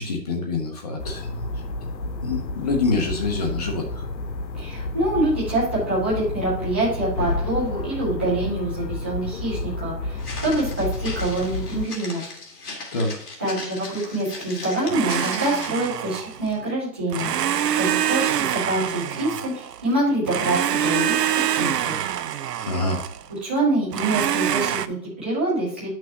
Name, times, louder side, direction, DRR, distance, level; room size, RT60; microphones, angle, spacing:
voice 1, 0.0-1.4 2.2-4.0 12.9-13.1 22.6-23.0, left 3 dB, 25° left, 2 dB, 0.9 m, -26 dB
sound 1, 1.0-11.9, left 2 dB, 90° left, 0.9 m, -31 dB
voice 2, 4.5-12.2 13.4-17.5 17.8-21.1 21.5-22.1 23.3-25.9, right 1 dB, 5° right, -8 dB, 0.7 m, -25 dB
Walk footsteps, 10.2-15.9, left 3 dB, 65° left, 2.1 m, -38 dB
Domestic sounds home sounds, 14.9-16.5 17.1-19.9 20.3-23.3 23.9-24.9, right 10 dB, 70° right, 0.6 m, -25 dB
9.4 x 6.1 x 2.9 m, 0.66 s
hypercardioid pair, 160°, 50 cm